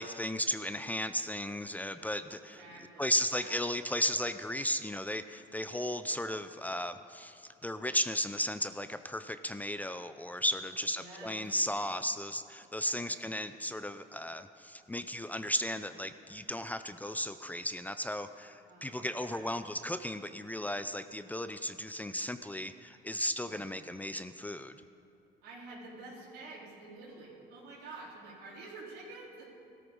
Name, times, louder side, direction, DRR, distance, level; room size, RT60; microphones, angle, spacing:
voice 1, 0.0-2.6 3.0-24.7, left 1 dB, 10° left, 10 dB, 0.5 m, -35 dB
voice 2, 2.5-3.6 10.7-11.4 12.8-13.1 18.7-19.6 23.5-23.7 25.4-29.4, right 3 dB, 90° right, -6 dB, 4.3 m, -49 dB
17.0 x 13.5 x 5.4 m, 2.5 s
cardioid pair, 110°, 17 cm